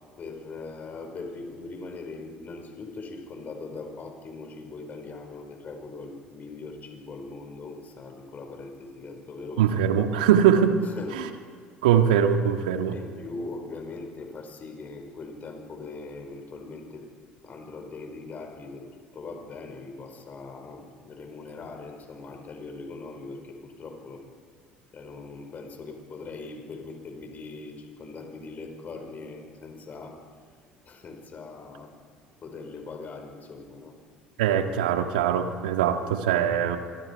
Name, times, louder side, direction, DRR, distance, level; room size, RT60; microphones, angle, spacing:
voice 1, 0.2-9.7 10.8-11.3 12.9-17.1 17.4-18.9 19.1-24.2 24.9-30.2 30.8-31.9 32.4-33.9, left 3 dB, 40° left, 3 dB, 5.1 m, -41 dB
voice 2, 9.6-10.8 11.8-13.0 34.4-36.8, right 9 dB, 80° right, 6 dB, 1.8 m, -22 dB
26.5 x 21.5 x 4.8 m, 2.2 s
hypercardioid pair, 60°, 4 cm